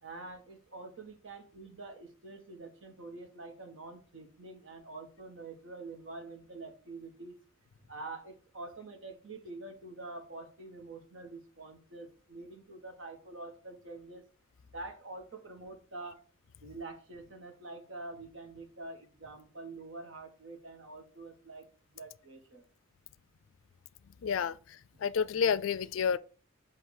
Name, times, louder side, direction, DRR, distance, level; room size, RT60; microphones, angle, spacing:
voice 1, 0.0-7.4 7.9-14.2 14.7-16.2 16.6-21.7 21.9-22.6 24.9-25.0, right 3 dB, 65° right, 1.4 m, -46 dB
voice 2, 24.2-26.2, left 6 dB, 70° left, 0.4 m, -30 dB
7.2 x 2.8 x 4.7 m
head